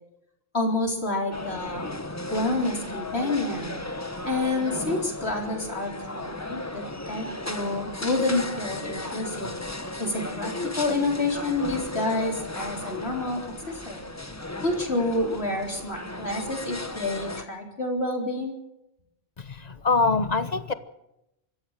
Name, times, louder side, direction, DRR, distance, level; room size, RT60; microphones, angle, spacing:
voice 1, 0.5-1.9 2.3-3.8 4.2-9.5 10.0-14.1 14.6-18.5, left 2 dB, 80° left, 1 dB, 4.4 m, -28 dB
sound 1, 1.3-17.4, left 2 dB, 15° left, 1.2 m, -35 dB
voice 2, 19.4-20.7, left 3 dB, 40° left, 12 dB, 1.2 m, -24 dB
25.5 x 14.0 x 7.4 m, 0.89 s
omnidirectional pair, 1.1 m